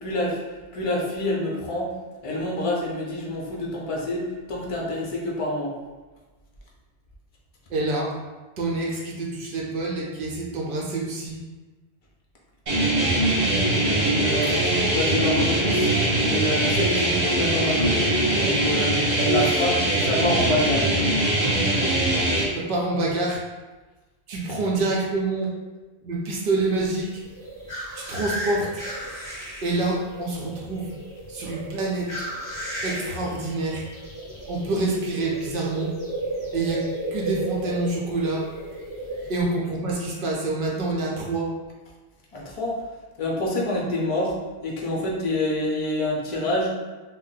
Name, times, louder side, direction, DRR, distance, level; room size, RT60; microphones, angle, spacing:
voice 1, 0.0-1.9 2.2-5.7 14.0-15.9 16.2-20.9 42.3-42.8 43.2-44.3 44.6-46.7, left 1 dB, 40° left, -3 dB, 0.6 m, -27 dB
voice 2, 7.7-8.1 8.6-11.4 22.6-23.4 24.3-25.5 26.0-27.2 27.9-28.8 29.6-30.9 31.3-32.1 32.8-33.9 34.5-35.9 36.5-38.5 39.3-41.5, right 2 dB, 65° right, -2 dB, 0.7 m, -27 dB
sound 1, 12.7-22.4, right 1 dB, 45° right, 1.0 m, -22 dB
sound 2, 26.6-39.4, right 1 dB, 5° right, 1.3 m, -35 dB
2.5 x 2.1 x 3.8 m, 1.2 s
omnidirectional pair, 1.1 m